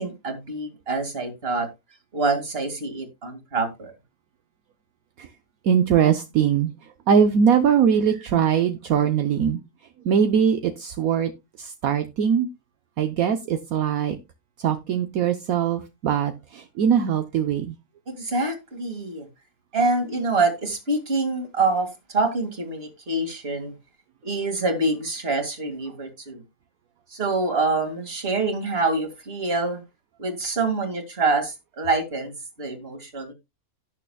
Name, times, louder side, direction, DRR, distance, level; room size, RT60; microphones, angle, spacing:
voice 1, 0.0-1.7 2.1-3.9 18.1-19.3 19.7-23.7 24.2-26.4 27.1-29.8 30.2-33.3, right 3 dB, 40° right, 2.4 m, -26 dB
voice 2, 5.6-6.7 7.1-9.6 10.0-11.3 11.6-12.5 13.0-14.2 14.6-17.7, right 8 dB, 70° right, 1.3 m, -21 dB
17.0 x 6.6 x 2.3 m
omnidirectional pair, 1.6 m